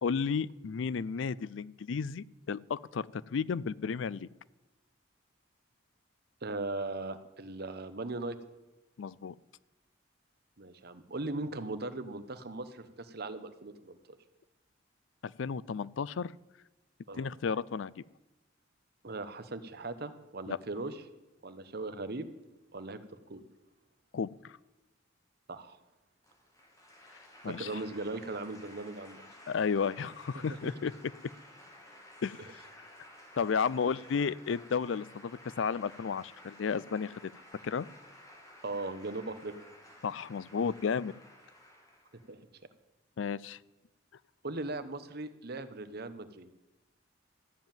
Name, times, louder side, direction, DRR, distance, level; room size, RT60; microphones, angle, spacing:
voice 1, 0.0-4.3 9.0-9.3 15.2-16.3 17.1-18.0 20.5-20.6 24.1-24.6 27.4-27.7 29.5-31.1 32.2-32.6 33.4-37.3 37.6-37.9 40.0-41.1 43.2-43.6, left 6 dB, 75° left, 21 dB, 0.4 m, -33 dB
voice 2, 6.4-8.4 10.6-14.0 17.1-17.3 19.0-21.0 21.4-22.3 22.7-23.0 23.3-23.4 25.5-25.8 27.4-29.2 30.3-30.4 38.6-39.5 42.1-42.4 44.4-46.5, right 2 dB, 55° right, 10 dB, 1.0 m, -39 dB
sound 1, 26.2-42.3, left 1 dB, 20° left, 2.8 m, -54 dB
13.5 x 7.5 x 9.0 m, 1.0 s
head